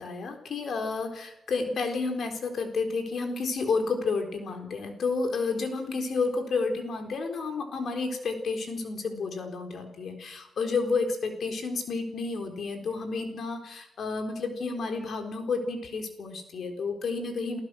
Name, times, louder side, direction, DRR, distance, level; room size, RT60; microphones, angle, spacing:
voice 1, 0.0-17.6, left 4 dB, 65° left, 5 dB, 3.9 m, -31 dB
29.0 x 14.0 x 6.4 m, 0.85 s
cardioid pair, 80°, 0 cm